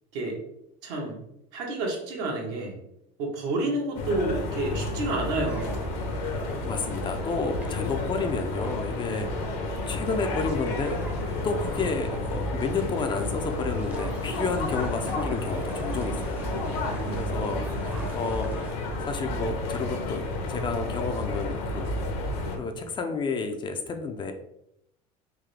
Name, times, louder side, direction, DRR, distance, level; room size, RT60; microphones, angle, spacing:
voice 1, 0.8-1.2 1.5-2.8 3.2-5.8 9.1-9.3 16.8-17.6 17.9-18.1, right 2 dB, 75° right, -1 dB, 1.3 m, -30 dB
sound 1, 3.9-22.6, left 2 dB, 70° left, 0.9 m, -31 dB
sound 2, 5.5-18.7, right 2 dB, 10° right, 0.7 m, -42 dB
voice 2, 6.2-11.0 11.4-22.3 22.6-24.3, left 4 dB, 30° left, 6 dB, 0.4 m, -31 dB
3.7 x 2.6 x 3.3 m, 0.79 s
supercardioid pair, 115°, 16 cm